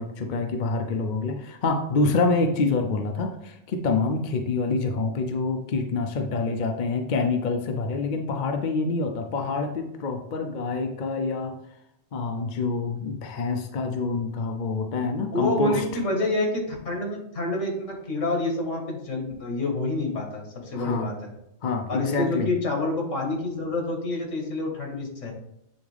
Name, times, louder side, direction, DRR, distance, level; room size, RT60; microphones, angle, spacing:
voice 1, 0.0-11.5 12.1-15.8 20.7-21.1 21.6-22.5, left 3 dB, 50° left, 4 dB, 0.6 m, -26 dB
voice 2, 15.3-21.3 21.9-25.3, left 2 dB, 80° left, 0 dB, 1.9 m, -28 dB
8.5 x 3.5 x 3.3 m, 0.77 s
omnidirectional pair, 1.3 m